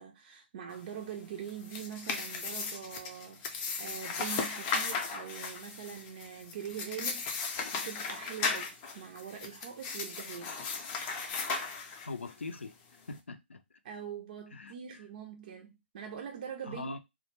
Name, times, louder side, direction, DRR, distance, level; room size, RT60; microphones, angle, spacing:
voice 1, 0.0-10.6 13.8-17.0, right 8 dB, 45° right, 0.4 m, -43 dB
sound 1, 1.4-12.3, left 4 dB, 25° left, 0.5 m, -36 dB
voice 2, 12.1-13.6 14.5-14.7 16.7-17.0, left 3 dB, 80° left, 0.4 m, -42 dB
2.2 x 2.1 x 3.0 m
figure-of-eight pair, 140°, 6 cm